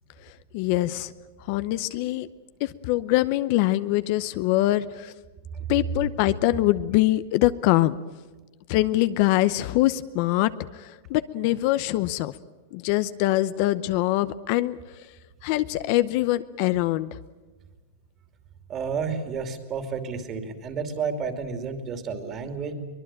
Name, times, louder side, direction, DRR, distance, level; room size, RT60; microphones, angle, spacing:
voice 1, 0.5-1.1 1.5-2.3 2.6-5.1 5.7-7.9 8.7-10.5 11.1-12.3 12.7-14.8 15.4-17.1, left 16 dB, 45° left, 14 dB, 0.7 m, -23 dB
voice 2, 18.7-22.7, right 5 dB, 25° right, 7 dB, 2.8 m, -31 dB
23.5 x 20.5 x 8.9 m, 1.3 s
supercardioid pair, 155°, 0 cm